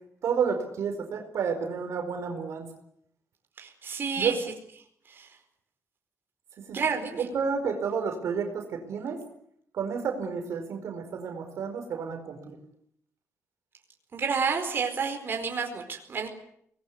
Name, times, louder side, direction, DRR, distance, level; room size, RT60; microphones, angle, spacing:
voice 1, 0.2-2.7 4.2-4.4 6.6-6.8 7.3-9.2 9.7-12.6, right 6 dB, 70° right, 5 dB, 4.7 m, -30 dB
voice 2, 3.6-4.3 5.1-5.4 6.7-7.3 14.1-16.3, right 5 dB, 45° right, 3 dB, 4.7 m, -30 dB
24.0 x 20.5 x 9.7 m, 0.70 s
cardioid pair, 110°, 5 cm